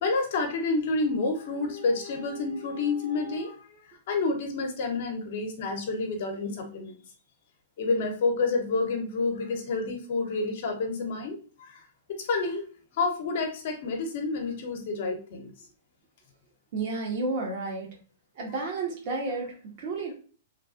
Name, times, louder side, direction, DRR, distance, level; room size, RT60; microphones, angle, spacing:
voice 1, 0.0-7.0 7.8-11.8 12.2-12.6 13.0-15.5, left 3 dB, 60° left, 4 dB, 0.9 m, -29 dB
voice 2, 16.7-18.0 18.3-20.1, right 3 dB, 50° right, -1 dB, 1.2 m, -31 dB
3.2 x 2.3 x 2.5 m, 0.39 s
hypercardioid pair, 125°, 0 cm